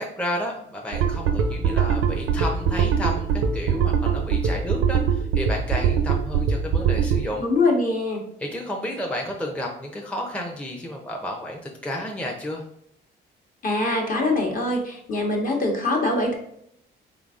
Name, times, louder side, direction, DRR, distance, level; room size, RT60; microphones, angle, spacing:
voice 1, 0.0-7.4 8.4-12.6, left 1 dB, 5° left, 0 dB, 0.5 m, -31 dB
sound 1, 0.9-7.3, right 7 dB, 85° right, 0.5 m, -22 dB
voice 2, 7.4-8.2 13.6-16.4, left 2 dB, 45° left, 1 dB, 1.0 m, -23 dB
3.8 x 3.4 x 2.4 m, 0.71 s
cardioid pair, 90°, 20 cm